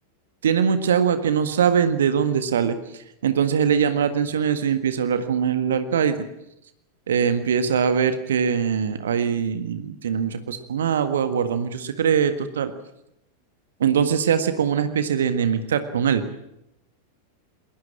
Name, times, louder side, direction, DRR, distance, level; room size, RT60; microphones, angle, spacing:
voice 1, 0.4-6.3 7.1-12.7 13.8-16.2, right 7 dB, 65° right, 10 dB, 1.6 m, -22 dB
20.5 x 19.5 x 8.8 m, 0.83 s
figure-of-eight pair, 90°, 0 cm